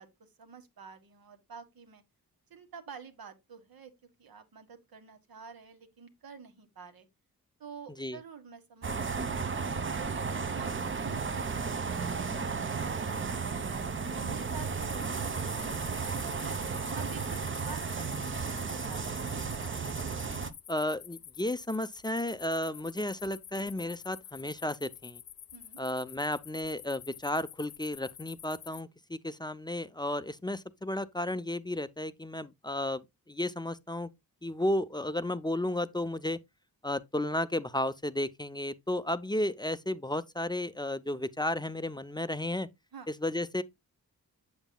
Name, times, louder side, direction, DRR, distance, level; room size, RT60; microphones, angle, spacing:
voice 1, 0.0-2.0 2.5-3.9 4.2-7.1 7.6-10.1 10.5-13.4 13.7-16.6 16.9-18.6 18.9-19.9 25.5-25.8 42.9-43.1, right 6 dB, 75° right, 1.6 m, -49 dB
sound 1, 8.8-20.5, right 5 dB, 35° right, 0.7 m, -34 dB
sound 2, 14.8-28.8, left 10 dB, 70° left, 0.7 m, -49 dB
voice 2, 20.7-25.2 25.8-34.1 34.4-36.4 36.8-42.7 43.2-43.6, left 1 dB, 10° left, 0.4 m, -33 dB
7.9 x 7.3 x 2.2 m
wide cardioid pair, 100°, 36 cm